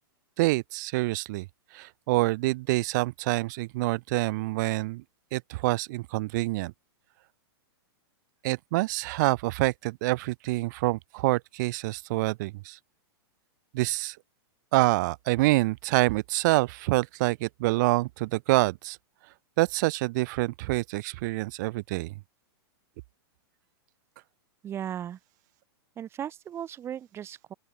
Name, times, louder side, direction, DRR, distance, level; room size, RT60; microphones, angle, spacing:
voice 1, 0.4-5.0 5.3-6.7 8.4-12.8 13.7-14.2 14.7-19.0 19.6-22.1, right 21 dB, 45° right, 2.7 m, -26 dB
voice 2, 24.6-25.2 26.0-27.5, right 10 dB, 20° right, 3.1 m, -36 dB
open air
hypercardioid pair, 155°, 13 cm